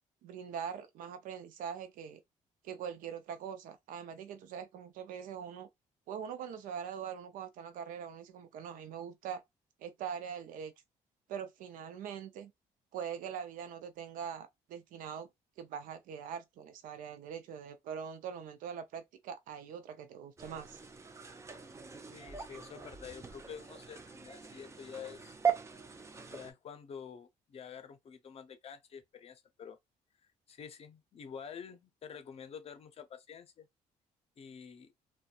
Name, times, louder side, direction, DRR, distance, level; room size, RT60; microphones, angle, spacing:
voice 1, 0.2-2.2 2.6-5.7 6.1-9.4 9.8-10.7 11.3-12.5 12.9-15.3 15.6-20.8, right 8 dB, 80° right, 0.6 m, -42 dB
sound 1, 20.4-26.5, right 7 dB, 20° right, 0.5 m, -39 dB
voice 2, 22.1-25.4 26.2-29.8 30.5-33.7 34.4-34.9, left 7 dB, 45° left, 0.6 m, -48 dB
2.6 x 2.2 x 2.3 m
cardioid pair, 90°, 14 cm